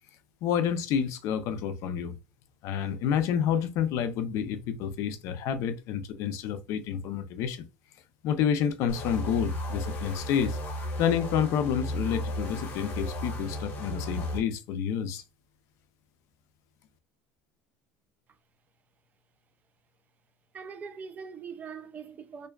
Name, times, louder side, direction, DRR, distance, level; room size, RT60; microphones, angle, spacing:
voice 1, 0.4-2.1 2.6-7.6 8.2-10.6 11.0-15.2, left 8 dB, 60° left, 0.4 m, -29 dB
sound 1, 8.9-14.4, equal, 40° left, 0.8 m, -34 dB
voice 2, 20.5-22.5, right 6 dB, 30° right, 0.4 m, -42 dB
2.5 x 2.2 x 2.3 m
cardioid pair, 125°, 6 cm